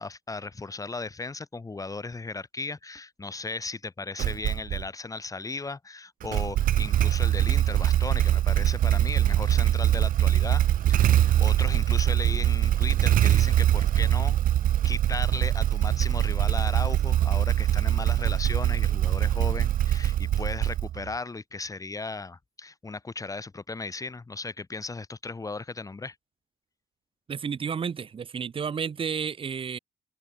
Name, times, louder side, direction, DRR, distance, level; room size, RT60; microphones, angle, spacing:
voice 1, 0.0-14.4 14.8-26.1, left 3 dB, 20° left, 6.5 m, -36 dB
Motorcycle / Engine starting, 4.2-4.9 6.2-21.1, right 12 dB, 55° right, 0.8 m, -23 dB
voice 2, 27.3-29.8, right 6 dB, 30° right, 1.1 m, -31 dB
open air
cardioid pair, 110°, 17 cm